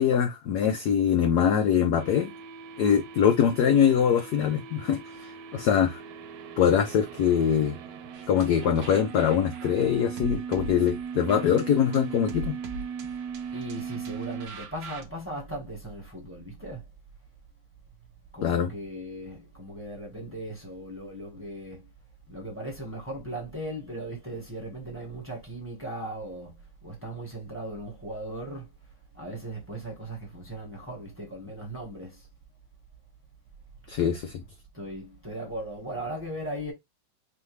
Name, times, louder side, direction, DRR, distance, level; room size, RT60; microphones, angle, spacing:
voice 1, 0.0-2.3 2.8-6.0 6.6-7.8 8.3-12.6 18.4-18.7 33.9-34.4, left 8 dB, 75° left, 0.9 m, -23 dB
sound 1, 2.0-14.5, right 7 dB, 80° right, 1.6 m, -39 dB
sound 2, 8.1-15.0, right 4 dB, 60° right, 1.1 m, -42 dB
voice 2, 13.5-16.8 18.3-21.9 22.3-26.6 26.8-28.7 29.1-32.2 34.7-36.7, right 1 dB, 10° right, 1.0 m, -38 dB
4.8 x 2.6 x 3.2 m
omnidirectional pair, 2.3 m